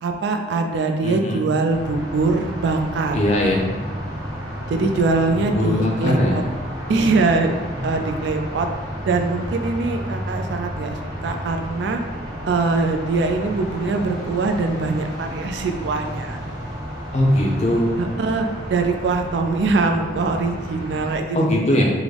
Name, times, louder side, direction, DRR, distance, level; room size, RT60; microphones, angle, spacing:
voice 1, 0.0-3.2 4.7-6.4 6.9-7.6 7.8-8.7 9.1-12.0 12.5-16.4 18.0-21.8, right 3 dB, 75° right, 5 dB, 0.3 m, -22 dB
voice 2, 1.0-1.5 3.1-3.6 5.3-6.5 17.1-17.9 21.3-21.9, left 1 dB, 35° left, -1 dB, 0.5 m, -20 dB
sound 1, 1.7-21.2, equal, 15° right, 0.8 m, -32 dB
3.6 x 2.0 x 3.2 m, 1.3 s
head